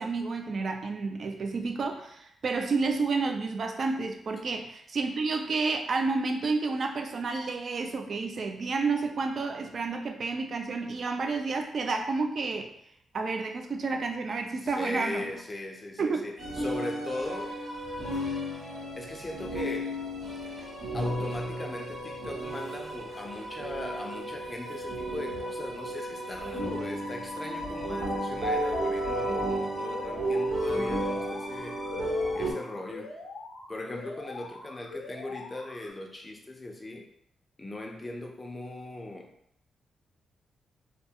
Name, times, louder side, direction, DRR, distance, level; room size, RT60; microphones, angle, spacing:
voice 1, 0.0-12.7 13.1-15.3 16.0-16.2, right 4 dB, 50° right, 4 dB, 0.3 m, -30 dB
voice 2, 14.6-17.6 19.0-20.0 20.4-20.5 20.9-31.8 32.4-33.1 33.7-37.1 37.6-39.3, left 1 dB, 20° left, 2 dB, 0.4 m, -39 dB
sound 1, 16.4-32.5, equal, 65° right, 1.0 m, -33 dB
Alarm, 29.9-35.9, left 2 dB, 80° left, 0.5 m, -44 dB
2.2 x 2.2 x 2.7 m, 0.72 s
cardioid pair, 110°, 0 cm